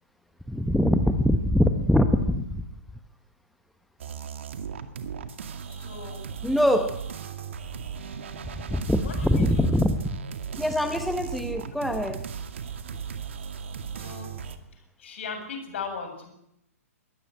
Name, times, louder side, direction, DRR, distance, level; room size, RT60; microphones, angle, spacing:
voice 1, 0.5-2.6 6.4-7.0 8.6-10.2 10.5-12.3, left 1 dB, ahead, 8 dB, 1.2 m, -23 dB
sound 1, 4.0-14.6, right 7 dB, 50° right, 2.2 m, -37 dB
voice 2, 5.7-6.3 9.0-9.7 12.9-13.0 14.0-14.3 15.0-16.3, left 5 dB, 50° left, 6 dB, 7.3 m, -38 dB
23.0 x 18.0 x 9.2 m, 0.82 s
figure-of-eight pair, 120°, 8 cm